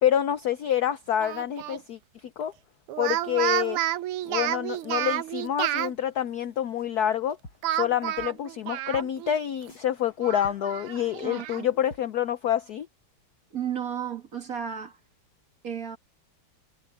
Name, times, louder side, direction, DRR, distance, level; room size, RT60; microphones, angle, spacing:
voice 1, 0.0-2.5 3.0-3.8 4.3-7.4 7.7-12.9, left 10 dB, 70° left, 0.9 m, -27 dB
Speech, 1.2-1.8 2.9-5.9 7.6-9.4 9.7-9.8 10.2-11.6, right 13 dB, 85° right, 1.7 m, -30 dB
sound 1, 6.8-7.2 7.4-7.8 8.2-8.3 8.6-8.7 8.9-9.1 9.3-9.4 9.7-10.2 10.4-10.8 11.2-11.3 11.6-11.7 11.9-12.0, left 2 dB, 50° left, 7.9 m, -47 dB
voice 2, 11.2-11.7 13.5-15.0 15.6-16.0, right 8 dB, 40° right, 2.2 m, -33 dB
omnidirectional pair, 2.4 m